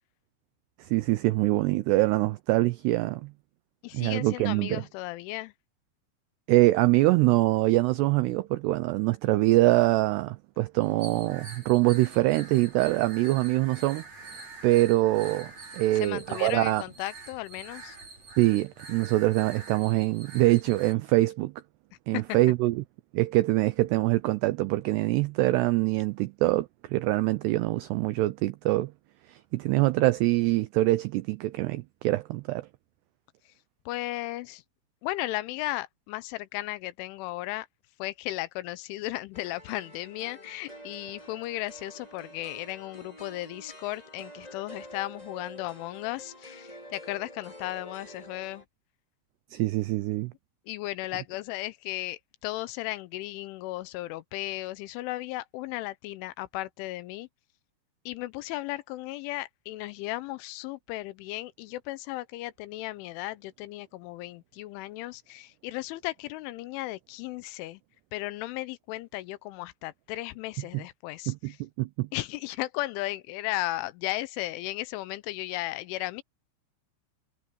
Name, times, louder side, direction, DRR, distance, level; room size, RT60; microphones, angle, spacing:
voice 1, 0.8-3.3 3.9-4.8 6.5-14.0 14.6-16.8 18.4-21.5 22.1-22.8 23.1-28.9 29.3-32.7 49.5-50.3 70.7-70.8 71.3-72.1, right 18 dB, 90° right, 2.3 m, -24 dB
voice 2, 3.8-5.5 16.0-18.0 22.1-22.4 33.9-34.6 35.0-37.7 38.0-48.6 50.7-57.3 58.1-67.8 68.1-71.6 72.1-76.2, left 17 dB, 85° left, 3.2 m, -35 dB
sound 1, 10.8-20.9, right 3 dB, 35° right, 7.7 m, -46 dB
sound 2, 39.3-48.6, equal, 10° left, 4.5 m, -47 dB
omnidirectional pair, 5.6 m